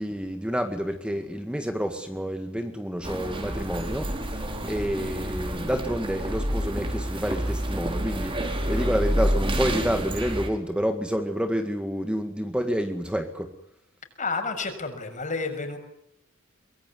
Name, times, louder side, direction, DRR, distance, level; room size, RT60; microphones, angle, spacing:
voice 1, 0.0-4.1 4.7-13.5, equal, 5° right, 6 dB, 1.9 m, -29 dB
sound 1, 3.0-10.5, equal, 25° right, 4.6 m, -28 dB
voice 2, 14.2-15.8, left 4 dB, 40° left, 6 dB, 6.4 m, -30 dB
24.5 x 22.5 x 9.8 m, 0.77 s
head